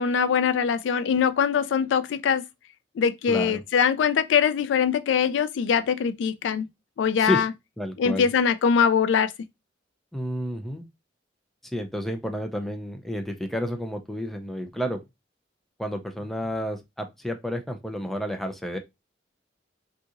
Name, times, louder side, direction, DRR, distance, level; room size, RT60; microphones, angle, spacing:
voice 1, 0.0-2.4 3.0-6.7 7.0-7.5 8.0-9.3, left 7 dB, 70° left, 0.3 m, -22 dB
voice 2, 3.3-3.6 7.2-7.4 7.8-8.3 10.1-10.8 11.7-15.0 15.8-18.8, equal, ahead, 0.4 m, -30 dB
3.6 x 2.8 x 2.5 m
head